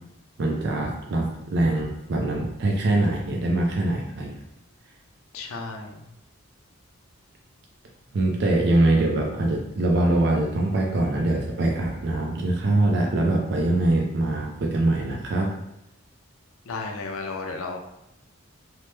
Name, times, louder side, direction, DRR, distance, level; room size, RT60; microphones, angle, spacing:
voice 1, 0.4-4.4 8.1-15.5, right 2 dB, 55° right, 1 dB, 0.4 m, -23 dB
voice 2, 5.3-5.9 16.7-17.8, left 3 dB, 80° left, 3 dB, 0.5 m, -33 dB
3.2 x 2.0 x 3.1 m, 0.86 s
head